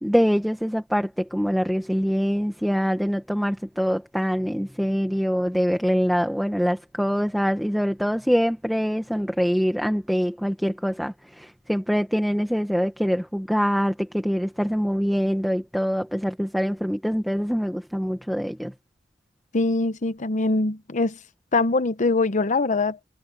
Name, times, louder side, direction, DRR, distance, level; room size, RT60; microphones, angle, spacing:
voice 1, 0.0-18.7, equal, ahead, 1.3 m, -24 dB
voice 2, 19.5-21.2 21.5-23.0, left 3 dB, 40° left, 0.8 m, -23 dB
head